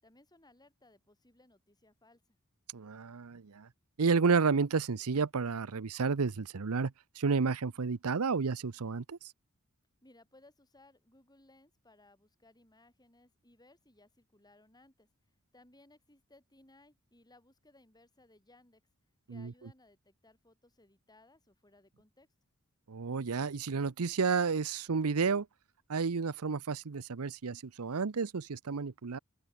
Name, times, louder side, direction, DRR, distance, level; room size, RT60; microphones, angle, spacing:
voice 1, 0.0-2.2 10.0-15.1 15.5-18.8 19.3-22.3, left 2 dB, 20° left, 7.7 m, -63 dB
voice 2, 2.7-3.7 4.0-9.2 19.3-19.5 22.9-25.5 25.9-29.2, right 5 dB, 80° right, 0.7 m, -31 dB
open air
head